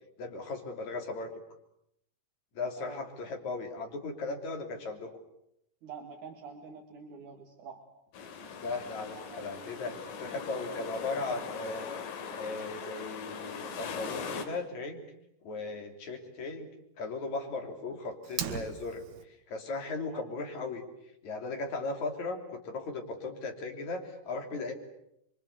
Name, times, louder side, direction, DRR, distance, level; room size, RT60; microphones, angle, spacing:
voice 1, 0.2-1.3 2.5-5.1 8.6-11.8 12.3-15.1 15.4-16.7 17.0-19.1 19.5-20.8 21.2-24.7, left 3 dB, 40° left, 4 dB, 3.8 m, -37 dB
voice 2, 5.8-7.8 9.1-9.4 20.1-20.3, right 5 dB, 50° right, 2 dB, 2.6 m, -46 dB
sound 1, 8.1-14.5, left 6 dB, 75° left, 5.3 m, -40 dB
Fire, 18.2-19.2, right 9 dB, 75° right, 4.5 m, -37 dB
29.0 x 24.5 x 8.1 m, 0.78 s
omnidirectional pair, 6.0 m